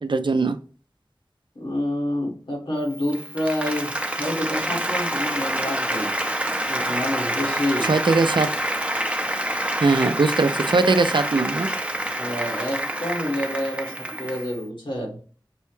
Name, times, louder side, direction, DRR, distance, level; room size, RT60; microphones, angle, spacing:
voice 1, 0.0-0.6 7.8-8.5 9.8-11.7, right 3 dB, 70° right, 10 dB, 0.4 m, -20 dB
voice 2, 1.6-6.1 6.6-7.9 12.2-15.2, left 1 dB, 80° left, -3 dB, 1.8 m, -28 dB
Applause, 3.0-14.5, right 1 dB, 15° right, 0.6 m, -27 dB
6.0 x 2.2 x 3.0 m, 0.40 s
wide cardioid pair, 45°, 8 cm